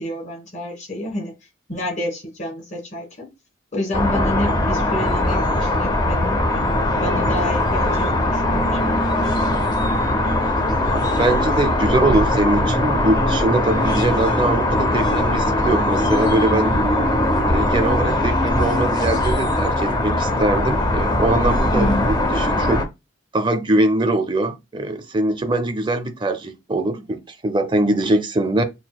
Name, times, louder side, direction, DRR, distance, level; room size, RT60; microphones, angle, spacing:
voice 1, 0.0-1.3 1.7-3.3 3.7-6.7 6.9-9.1 21.7-22.1, left 1 dB, 35° left, 1.8 m, -28 dB
sound 1, 3.9-22.8, left 1 dB, 20° left, 0.6 m, -20 dB
voice 2, 10.9-16.7 17.5-21.9 22.3-22.8 23.3-28.6, right 2 dB, 25° right, 0.5 m, -22 dB
6.0 x 2.7 x 2.2 m
head